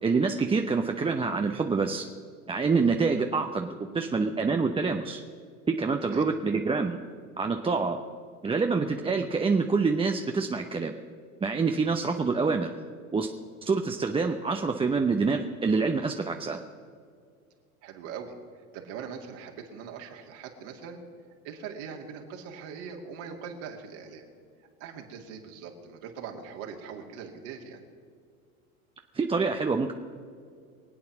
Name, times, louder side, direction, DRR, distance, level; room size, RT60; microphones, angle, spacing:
voice 1, 0.0-2.0 2.5-5.2 5.7-7.0 7.4-8.0 8.4-10.9 11.4-12.7 13.1-13.3 13.7-16.6 29.1-29.9, right 4 dB, 15° right, 4 dB, 0.7 m, -26 dB
voice 2, 3.8-4.3 6.1-6.3 17.8-18.3 18.7-21.0 21.4-24.2 24.8-27.8, right 6 dB, 60° right, 2 dB, 2.4 m, -41 dB
23.5 x 8.6 x 6.0 m, 2.2 s
hypercardioid pair, 85°, 44 cm